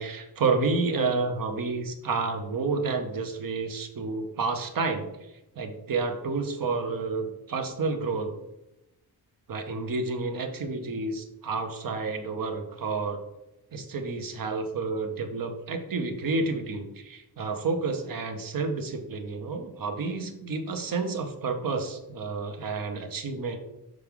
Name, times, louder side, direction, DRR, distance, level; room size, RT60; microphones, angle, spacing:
voice 1, 0.0-5.1 5.6-8.3 9.5-13.2 13.7-23.6, right 4 dB, 55° right, 5 dB, 0.9 m, -30 dB
6.4 x 4.7 x 3.6 m, 0.89 s
wide cardioid pair, 140°, 39 cm